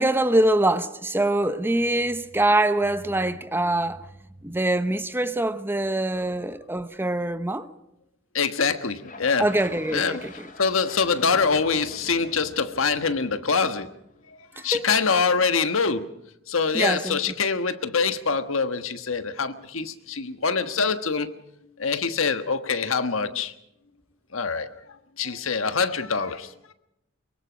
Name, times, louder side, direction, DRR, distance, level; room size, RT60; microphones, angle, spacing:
voice 1, 0.0-4.0 4.4-7.7 9.4-10.5 14.7-14.9 16.7-17.2, right 1 dB, 10° right, 0.9 m, -24 dB
voice 2, 8.3-9.5 9.9-10.2 10.6-13.9 14.5-16.1 16.5-21.3 21.8-23.5 24.3-24.7 25.2-26.5, left 5 dB, 70° left, 1.4 m, -24 dB
sound 1, 9.0-14.3, left 3 dB, 40° left, 4.4 m, -45 dB
23.5 x 23.5 x 5.2 m
head